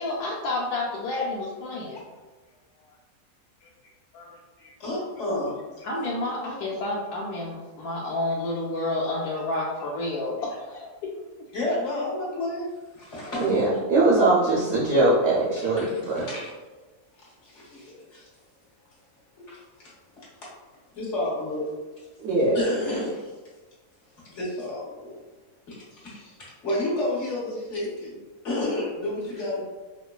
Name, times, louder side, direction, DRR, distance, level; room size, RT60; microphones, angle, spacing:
voice 1, 0.0-2.0 4.1-4.7 5.8-10.9, left 2 dB, 85° left, -5 dB, 1.1 m, -30 dB
voice 2, 4.8-5.6 11.5-12.6 12.9-13.7 15.6-16.5 17.2-18.2 19.5-19.9 20.9-21.6 22.5-23.3 24.3-25.2 25.7-28.2 28.4-29.7, left 1 dB, 55° left, -7 dB, 1.4 m, -31 dB
voice 3, 13.4-16.3 22.2-22.6, right 2 dB, 60° right, -5 dB, 0.7 m, -21 dB
4.6 x 2.2 x 2.3 m, 1.2 s
omnidirectional pair, 1.5 m